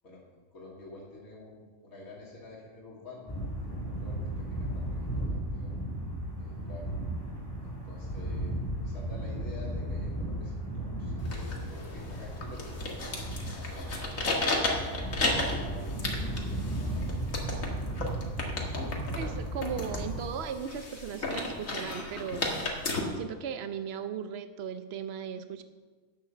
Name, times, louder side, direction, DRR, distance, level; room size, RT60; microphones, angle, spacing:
voice 1, 0.5-3.3 3.6-5.8 6.4-6.9 7.6-8.6 8.8-13.2 13.5-14.2 15.0-17.2, left 2 dB, 85° left, -4 dB, 2.5 m, -49 dB
sound 1, 3.3-20.2, right 1 dB, 15° left, 2.2 m, -35 dB
sound 2, 11.2-23.0, left 2 dB, 70° left, 2.3 m, -34 dB
voice 2, 19.1-22.6 23.2-25.6, right 7 dB, 55° right, 9 dB, 1.0 m, -37 dB
11.0 x 8.7 x 6.9 m, 1.4 s
omnidirectional pair, 1.4 m